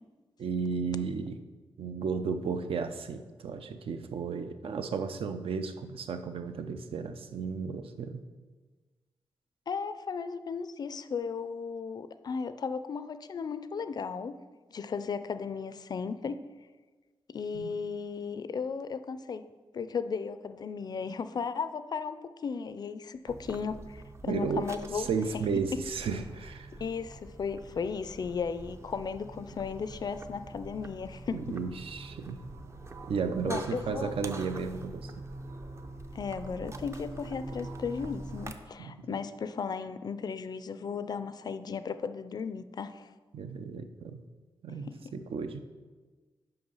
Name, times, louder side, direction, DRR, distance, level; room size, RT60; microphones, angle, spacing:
voice 1, 0.4-1.4 1.8-8.2 17.5-17.7 24.3-26.7 31.3-32.4 33.1-35.2 38.8-39.2 43.3-44.2 44.6-45.6, right 5 dB, 70° right, 8 dB, 0.6 m, -34 dB
voice 2, 9.7-14.4 14.7-16.4 17.3-19.4 19.7-25.1 26.8-31.6 33.5-34.1 36.1-43.1 44.9-45.1, left 5 dB, 45° left, 12 dB, 0.4 m, -35 dB
sound 1, 23.3-38.5, right 2 dB, 30° right, 0.5 m, -44 dB
7.9 x 5.8 x 5.5 m, 1.4 s
wide cardioid pair, 155°, 10 cm